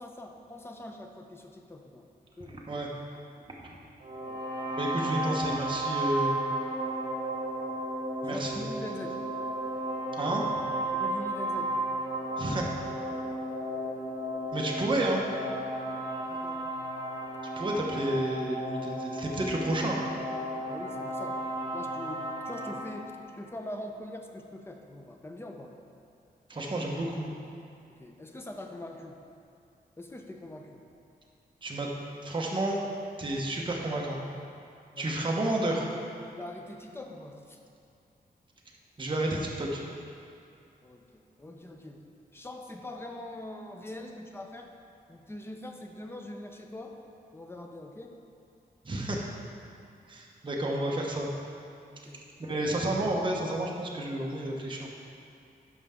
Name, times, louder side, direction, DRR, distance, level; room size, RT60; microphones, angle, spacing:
voice 1, 0.0-2.1 2.4-2.6 4.2-4.4 8.2-9.2 10.9-11.7 16.3-16.7 20.7-21.4 21.7-25.7 27.9-29.2 30.0-30.8 34.9-35.2 36.3-37.6 40.8-42.0 42.3-44.7 45.1-47.0 47.3-48.1 51.9-52.3 52.8-53.0, left 1 dB, 15° left, 3 dB, 0.6 m, -43 dB
sound 1, 4.0-22.8, right 1 dB, 65° right, 1.8 m, -33 dB
voice 2, 4.7-6.3 8.2-8.5 10.2-10.4 12.4-12.7 14.5-15.2 17.6-20.0 26.5-27.3 31.6-31.9 32.2-32.8 33.2-34.2 35.0-35.9 39.0-39.8 48.8-49.2 50.1-51.3 52.4-54.9, right 1 dB, 30° right, -2 dB, 1.0 m, -30 dB
11.0 x 5.5 x 3.7 m, 2.5 s
wide cardioid pair, 145°, 16 cm